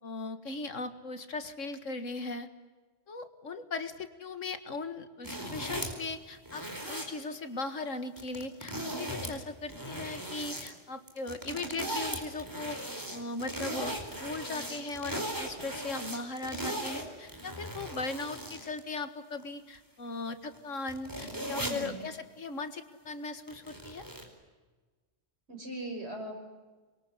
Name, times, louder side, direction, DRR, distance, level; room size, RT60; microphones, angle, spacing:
voice 1, 0.0-2.5 3.1-12.8 13.1-24.1, left 3 dB, 80° left, 10 dB, 2.2 m, -38 dB
sound 1, 5.2-6.0 6.4-7.1 8.2-9.3 9.6-10.7 11.1-18.8 19.4-19.5 20.5-20.6 20.9-21.9 23.5-24.2, right 1 dB, 15° right, 4.5 m, -38 dB
voice 2, 21.5-22.1 25.5-26.6, right 1 dB, 55° right, 3 dB, 5.9 m, -40 dB
26.0 x 22.5 x 9.8 m, 1.3 s
omnidirectional pair, 1.3 m